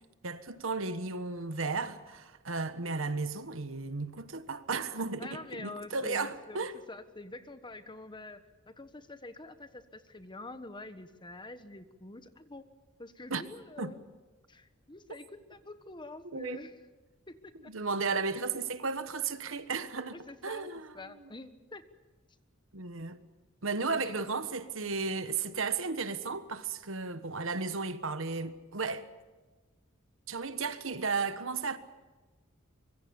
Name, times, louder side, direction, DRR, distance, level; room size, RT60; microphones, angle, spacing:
voice 1, 0.2-6.7 13.3-13.4 13.8-13.9 16.3-16.6 17.7-20.9 22.7-23.2 23.6-29.0 30.3-31.8, right 4 dB, 70° right, 1.4 m, -34 dB
voice 2, 5.2-12.7 13.0-14.0 14.5-16.8 17.3-17.7 20.1-20.7 20.9-21.9 23.9-24.2, left 2 dB, 25° left, 1.4 m, -46 dB
25.0 x 22.5 x 7.1 m
head